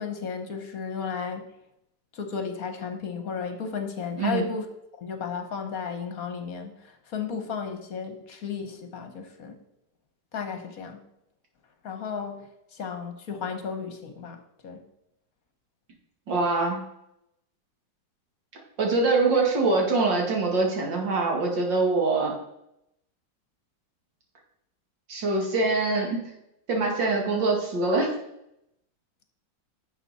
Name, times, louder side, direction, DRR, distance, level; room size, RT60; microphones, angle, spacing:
voice 1, 0.0-1.5 2.1-4.7 5.0-9.6 10.3-11.0 11.8-12.4 12.7-14.8, left 5 dB, 55° left, 6 dB, 1.4 m, -34 dB
voice 2, 16.3-16.8 18.8-22.3 25.1-26.2 26.7-28.1, right 3 dB, 85° right, 0 dB, 2.8 m, -24 dB
10.5 x 7.1 x 4.1 m, 0.82 s
omnidirectional pair, 1.9 m